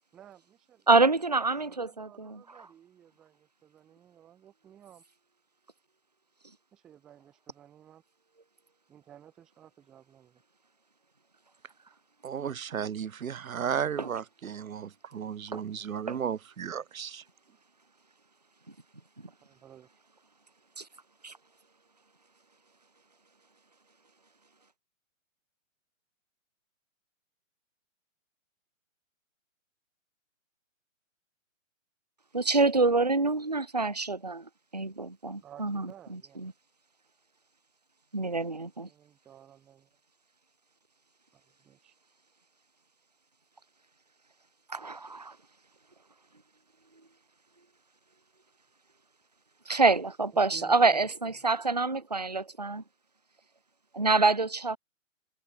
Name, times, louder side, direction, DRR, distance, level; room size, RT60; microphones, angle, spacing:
voice 1, 0.1-0.9 1.3-5.0 6.7-8.0 8.9-10.4 19.4-19.9 35.4-36.5 38.8-39.9 41.3-41.9 50.3-51.5, right 10 dB, ahead, 0.7 m, -55 dB
voice 2, 0.9-2.4 14.0-14.1 15.5-15.6 16.1-16.2 20.8-20.9 21.2-21.3 32.3-34.4 34.7-36.5 38.1-38.9 44.7-45.3 49.7-52.8 53.9-54.8, right 3 dB, 35° right, 0.4 m, -26 dB
voice 3, 12.2-17.2, right 8 dB, 80° right, 1.3 m, -34 dB
hypercardioid pair, 175°, 40 cm